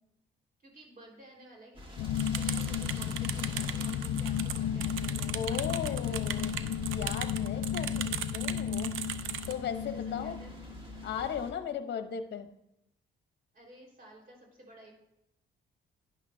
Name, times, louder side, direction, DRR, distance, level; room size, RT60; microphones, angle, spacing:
voice 1, 0.6-6.8 9.8-10.6 13.5-14.9, right 1 dB, 45° right, -1 dB, 4.2 m, -54 dB
sound 1, 1.7-11.5, equal, 25° right, 1.9 m, -48 dB
sound 2, 2.0-11.4, left 10 dB, 80° left, 0.4 m, -34 dB
sound 3, 2.2-9.5, right 10 dB, 85° right, 0.6 m, -38 dB
voice 2, 5.3-9.0 9.5-10.4 11.0-12.5, left 7 dB, 60° left, 9 dB, 0.9 m, -37 dB
12.0 x 9.8 x 2.7 m, 0.83 s
cardioid pair, 90°, 20 cm